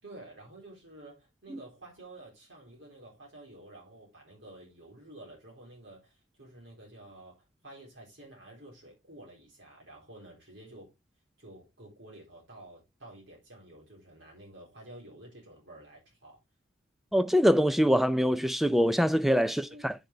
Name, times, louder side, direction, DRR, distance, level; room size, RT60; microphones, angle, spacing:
voice 1, 0.0-10.9 11.4-16.4 19.4-19.9, right 1 dB, 75° right, 3.9 m, -51 dB
voice 2, 17.1-19.9, equal, ahead, 0.4 m, -24 dB
8.0 x 6.4 x 3.4 m
head